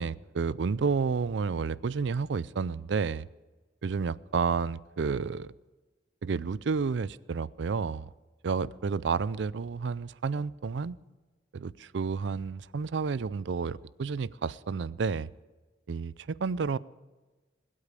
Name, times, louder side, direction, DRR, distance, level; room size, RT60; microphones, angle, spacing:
voice 1, 0.0-3.3 3.8-5.5 6.2-8.1 8.4-11.0 11.5-15.3 15.9-16.8, right 5 dB, 65° right, 20 dB, 0.4 m, -30 dB
21.0 x 8.4 x 6.8 m, 1.3 s
head